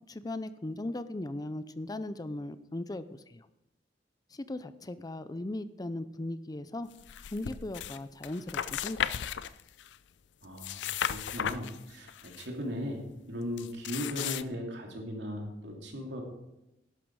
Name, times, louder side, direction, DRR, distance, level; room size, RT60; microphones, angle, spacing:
voice 1, 0.1-3.5 4.3-6.9 7.3-9.2, left 1 dB, 20° left, 13 dB, 0.5 m, -38 dB
sound 1, 7.0-8.0 8.2-10.0 10.4-12.5 13.6-14.4, left 9 dB, 90° left, 0.4 m, -35 dB
voice 2, 10.4-13.0 13.3-16.2, equal, 75° right, 1 dB, 2.9 m, -38 dB
11.5 x 11.5 x 4.7 m, 0.90 s
head